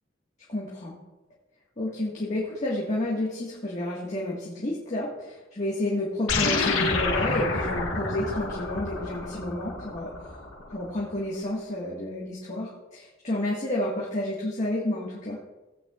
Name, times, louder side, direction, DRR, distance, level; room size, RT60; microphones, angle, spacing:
voice 1, 0.5-1.0 1.8-10.1 10.7-15.4, left 1 dB, 35° left, -5 dB, 1.7 m, -30 dB
sound 1, 6.3-10.9, left 3 dB, 80° left, 1.6 m, -29 dB
17.5 x 9.1 x 2.5 m, 1.1 s
head